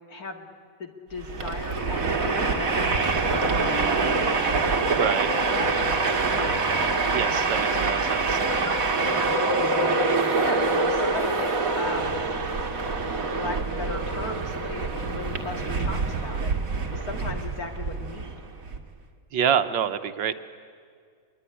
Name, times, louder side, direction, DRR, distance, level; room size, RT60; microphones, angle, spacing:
voice 1, 0.1-0.5 0.8-4.6 5.4-6.6 8.2-8.6 9.1-9.4 9.7-10.0 10.4-12.2 13.3-16.5 16.9-18.3, left 3 dB, 50° left, 4 dB, 2.7 m, -37 dB
Train, 1.2-18.8, right 3 dB, 45° right, 2.3 m, -25 dB
Bass guitar, 3.5-6.6, left 2 dB, 30° left, 4.2 m, -42 dB
voice 2, 4.9-5.3 7.1-8.4 19.3-20.3, right 8 dB, 80° right, 9 dB, 1.8 m, -26 dB
25.5 x 22.5 x 10.0 m, 2.2 s
omnidirectional pair, 2.0 m